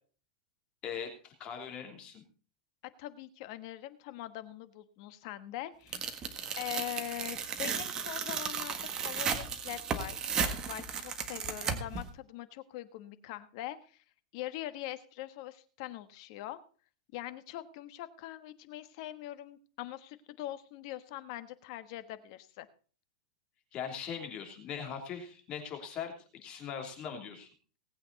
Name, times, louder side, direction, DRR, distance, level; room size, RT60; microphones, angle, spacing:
voice 1, 0.8-2.2 23.7-27.5, left 7 dB, 25° left, 3 dB, 3.1 m, -40 dB
voice 2, 3.0-14.0 14.3-16.6 17.1-22.7, left 14 dB, 45° left, 12 dB, 1.3 m, -43 dB
Tearing, 5.9-12.0, right 6 dB, 20° right, 1.6 m, -35 dB
19.0 x 8.7 x 4.1 m, 0.40 s
supercardioid pair, 160°, 4 cm